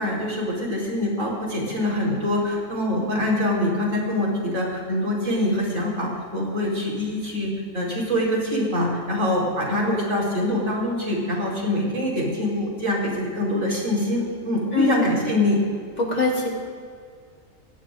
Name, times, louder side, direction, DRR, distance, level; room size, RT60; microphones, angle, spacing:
voice 1, 0.0-15.6, left 1 dB, 75° right, -3 dB, 4.8 m, -24 dB
voice 2, 14.7-15.1 16.0-16.5, left 4 dB, 90° left, -1 dB, 3.7 m, -22 dB
27.5 x 17.5 x 2.6 m, 2.1 s
omnidirectional pair, 1.4 m